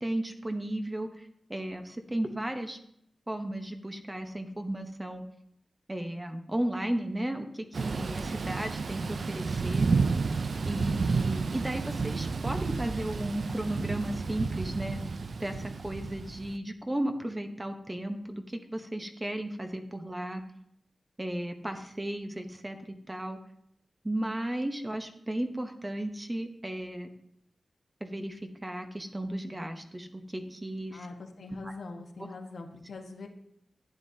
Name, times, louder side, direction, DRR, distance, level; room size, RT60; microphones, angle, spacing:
voice 1, 0.0-2.8 3.3-5.2 5.9-9.9 10.6-15.0 15.4-20.4 21.2-23.4 24.0-27.1 28.0-31.1 31.6-31.7, right 1 dB, 15° right, 6 dB, 0.9 m, -35 dB
Thunder / Rain, 7.7-16.6, right 4 dB, 60° right, 0.4 m, -31 dB
voice 2, 30.9-33.3, left 3 dB, 80° left, 3 dB, 1.3 m, -43 dB
11.5 x 9.4 x 2.8 m, 0.73 s
wide cardioid pair, 130°, 0 cm